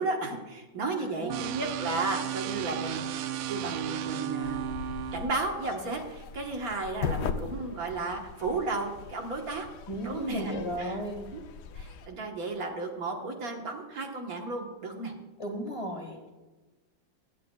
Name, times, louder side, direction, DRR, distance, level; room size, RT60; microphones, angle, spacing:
voice 1, 0.0-4.7 5.1-9.7 10.0-11.0 11.3-11.4 11.8-15.1, right 3 dB, 55° right, 2 dB, 1.7 m, -34 dB
voice 2, 0.9-1.4 9.9-11.2 15.4-16.3, equal, 20° left, 1 dB, 1.4 m, -35 dB
sound 1, 1.3-5.3, right 9 dB, 85° right, 1.3 m, -34 dB
sound 2, 4.4-12.1, left 6 dB, 70° left, 1.2 m, -39 dB
23.0 x 8.4 x 2.3 m, 1.2 s
omnidirectional pair, 2.0 m